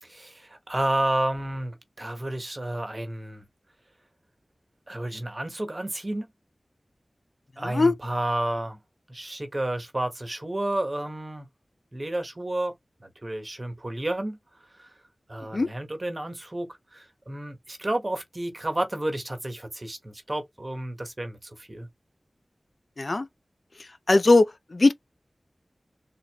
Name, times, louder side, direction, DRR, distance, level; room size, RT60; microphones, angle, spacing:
voice 1, 0.0-3.5 4.9-6.3 7.6-8.8 9.1-11.5 11.9-14.4 14.8-14.9 15.3-21.9, right 1 dB, 35° right, 1.3 m, -31 dB
voice 2, 24.1-24.9, left 2 dB, 55° left, 0.5 m, -19 dB
3.6 x 2.8 x 3.0 m
wide cardioid pair, 45°, 0 cm